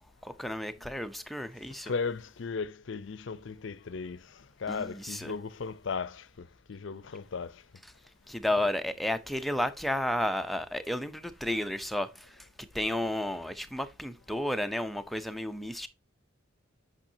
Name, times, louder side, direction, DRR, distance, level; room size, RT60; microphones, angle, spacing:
voice 1, 0.2-1.9 4.7-5.3 8.3-15.9, left 1 dB, ahead, 0.5 m, -32 dB
voice 2, 1.9-4.2 4.6-7.5 8.6-8.7, left 5 dB, 65° left, 0.5 m, -36 dB
8.8 x 5.6 x 2.7 m
head